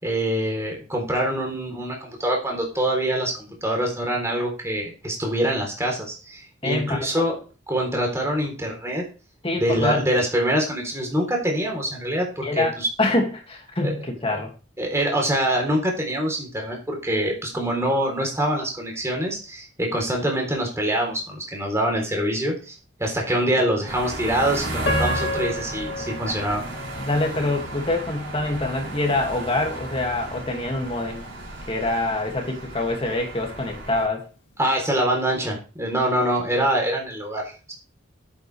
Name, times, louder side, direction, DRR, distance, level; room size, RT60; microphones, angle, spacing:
voice 1, 0.0-7.4 7.7-9.0 9.6-12.9 13.8-13.9 14.8-22.7 23.0-26.6 34.6-37.7, right 1 dB, 15° right, 0 dB, 3.8 m, -25 dB
voice 2, 6.6-7.1 9.4-10.1 12.4-12.7 13.0-14.5 23.3-23.4 27.0-31.2 31.7-34.3, left 2 dB, 30° left, 2 dB, 2.4 m, -25 dB
sound 1, 23.8-34.0, right 1 dB, 65° right, 6.3 m, -33 dB
Piano, 24.8-27.9 28.4-28.5 29.2-29.4, left 2 dB, 60° left, 2.0 m, -31 dB
10.5 x 8.9 x 3.5 m, 0.34 s
head